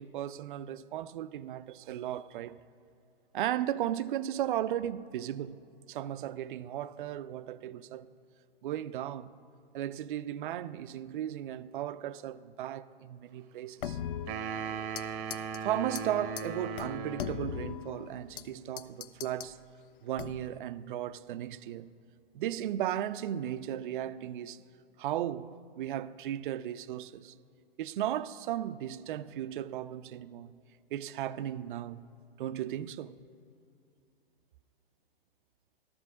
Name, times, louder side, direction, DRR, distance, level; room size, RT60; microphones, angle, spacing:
voice 1, 0.0-2.6 3.3-5.6 5.9-8.1 8.6-9.3 9.7-14.0 15.6-19.6 20.0-21.9 22.3-24.6 25.0-25.5 25.8-27.3 27.8-30.5 30.9-32.1 32.4-33.1, right 11 dB, 55° right, 0.4 m, -35 dB
sound 1, 13.8-15.1 15.3-15.6 16.0-16.1 16.4-16.5 16.8-18.5 18.8-19.5 20.2-20.6, left 9 dB, 55° left, 0.5 m, -39 dB
sound 2, 14.3-17.6, right 5 dB, 30° right, 0.7 m, -38 dB
12.5 x 6.1 x 6.2 m
hypercardioid pair, 125°, 31 cm